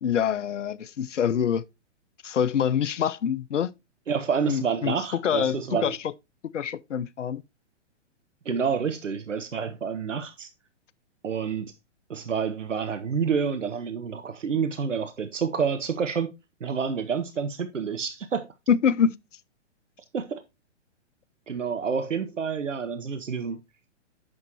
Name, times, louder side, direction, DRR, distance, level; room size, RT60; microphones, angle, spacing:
voice 1, 0.0-1.6 2.2-3.7 4.5-6.0 6.5-7.4 18.7-19.1, left 8 dB, 80° left, 0.6 m, -25 dB
voice 2, 4.1-5.9 8.4-10.5 11.2-11.7 12.1-16.3 16.6-18.5 20.1-20.4 21.5-23.6, right 6 dB, 85° right, 0.9 m, -28 dB
8.6 x 6.3 x 2.8 m
figure-of-eight pair, 120°, 36 cm